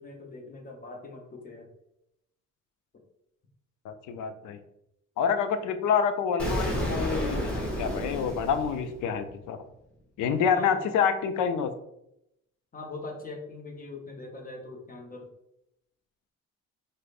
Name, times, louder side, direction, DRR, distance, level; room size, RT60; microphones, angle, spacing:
voice 1, 0.0-1.7 10.5-10.8 12.7-15.3, left 3 dB, 30° left, 2 dB, 0.8 m, -42 dB
voice 2, 3.8-4.6 5.2-9.6 10.2-11.7, left 7 dB, 80° left, 10 dB, 0.5 m, -27 dB
Explosion, 6.4-9.3, equal, 5° left, 1.1 m, -31 dB
4.8 x 2.1 x 2.4 m, 0.81 s
cardioid pair, 90°, 30 cm